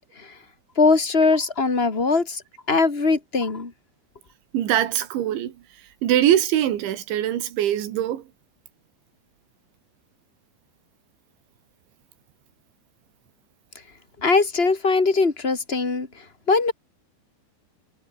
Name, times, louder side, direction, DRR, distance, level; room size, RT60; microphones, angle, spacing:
voice 1, 0.7-2.4 2.7-3.7 14.2-16.1 16.5-16.7, left 4 dB, 20° left, 1.6 m, -21 dB
voice 2, 4.5-5.5 6.0-8.2, right 11 dB, 80° right, 4.5 m, -22 dB
omnidirectional pair, 5.2 m